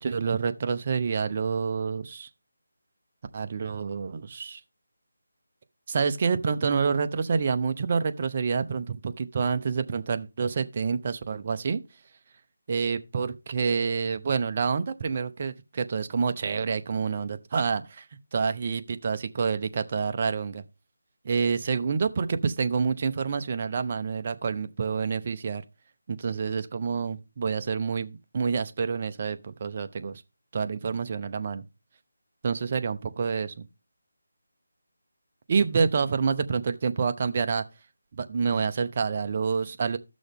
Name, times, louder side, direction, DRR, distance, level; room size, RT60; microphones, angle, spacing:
voice 1, 0.0-2.3 3.3-4.6 5.9-11.8 12.7-18.0 18.3-20.6 21.2-25.6 26.1-30.2 30.5-31.6 32.4-33.7 35.5-37.6 38.1-40.0, right 5 dB, 35° right, 0.7 m, -28 dB
15.0 x 6.2 x 3.5 m
figure-of-eight pair, 165°, 0 cm